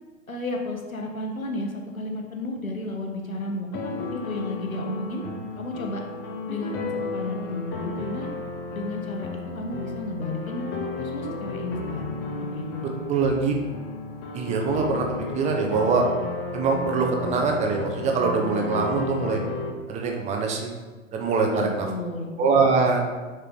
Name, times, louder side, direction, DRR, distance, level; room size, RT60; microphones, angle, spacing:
voice 1, 0.3-5.2 5.6-6.0 6.4-8.3 8.7-9.3 9.5-13.0 21.5-22.3, left 1 dB, 85° left, 1 dB, 1.2 m, -33 dB
sound 1, 3.7-19.7, left 3 dB, 25° left, 0.7 m, -33 dB
voice 2, 13.1-13.5 14.3-16.0 16.5-19.4 19.9-20.7 21.1-21.9 22.4-23.1, right 4 dB, 15° right, 1 dB, 0.6 m, -23 dB
6.6 x 4.4 x 3.7 m, 1.3 s
figure-of-eight pair, 100°, 40 cm